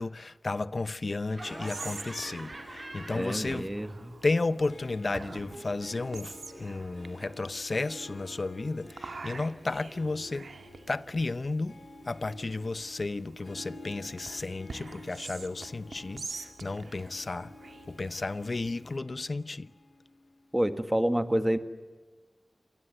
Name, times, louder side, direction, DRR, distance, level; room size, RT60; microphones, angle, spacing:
voice 1, 0.0-3.7 4.2-10.5 10.9-11.8 12.1-17.5 17.9-19.7, left 3 dB, 55° left, 0.8 m, -33 dB
Harp, 1.2-20.5, left 2 dB, 70° left, 3.9 m, -51 dB
Laughter, 1.3-4.1 4.3-7.2, right 2 dB, 40° right, 4.7 m, -47 dB
Whispering, 1.4-19.0, right 4 dB, 80° right, 2.0 m, -47 dB
voice 2, 3.1-4.2 20.5-21.6, right 1 dB, 15° right, 1.7 m, -28 dB
27.5 x 20.0 x 8.0 m
wide cardioid pair, 50°, 0 cm